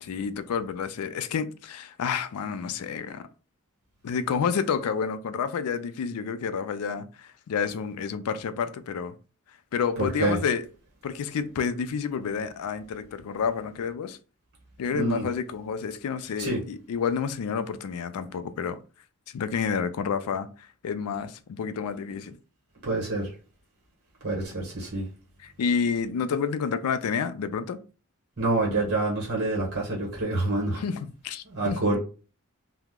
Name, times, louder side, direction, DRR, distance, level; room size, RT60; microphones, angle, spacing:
voice 1, 0.0-3.3 4.0-9.2 9.7-10.7 11.0-14.2 14.8-18.8 19.3-22.4 25.4-27.8 30.7-31.8, left 6 dB, 85° left, 0.4 m, -29 dB
voice 2, 10.0-10.4 14.9-15.3 16.4-16.6 22.8-23.3 24.2-25.0 28.4-30.8 31.5-32.0, right 2 dB, 50° right, 1.1 m, -27 dB
2.9 x 2.0 x 3.5 m
head